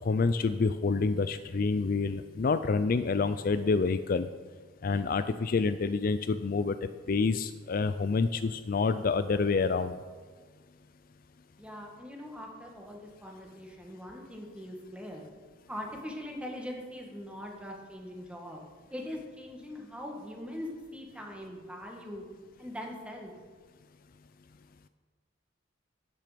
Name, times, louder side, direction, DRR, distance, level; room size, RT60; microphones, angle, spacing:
voice 1, 0.0-4.3 4.8-6.8 7.1-9.9, left 4 dB, 50° left, 11 dB, 0.4 m, -28 dB
voice 2, 11.6-15.2 15.7-18.6 18.9-22.2 22.6-23.3, left 1 dB, 5° right, 0 dB, 1.8 m, -42 dB
12.5 x 9.2 x 5.1 m, 1.5 s
head